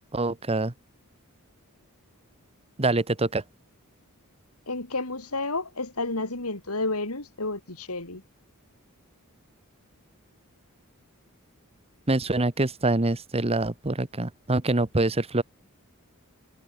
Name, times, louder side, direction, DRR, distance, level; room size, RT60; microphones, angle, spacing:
voice 1, 0.1-0.7 2.8-3.4 12.1-15.4, right 2 dB, 30° right, 1.3 m, -25 dB
voice 2, 4.7-8.2, left 2 dB, 85° left, 5.0 m, -31 dB
head